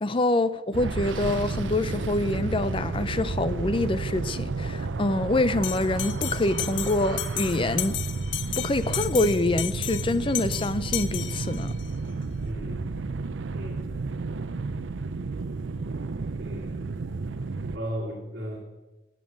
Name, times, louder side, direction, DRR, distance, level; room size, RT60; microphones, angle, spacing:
voice 1, 0.0-8.0 8.6-11.7, left 2 dB, 30° left, 0.5 m, -26 dB
sound 1, 0.7-17.8, right 3 dB, 85° right, 0.6 m, -32 dB
Bell, 5.6-11.9, left 13 dB, 85° left, 0.7 m, -34 dB
voice 2, 12.4-12.9 13.5-13.9 16.4-16.8 17.7-18.6, equal, 60° right, 2.4 m, -36 dB
11.0 x 8.4 x 7.4 m
head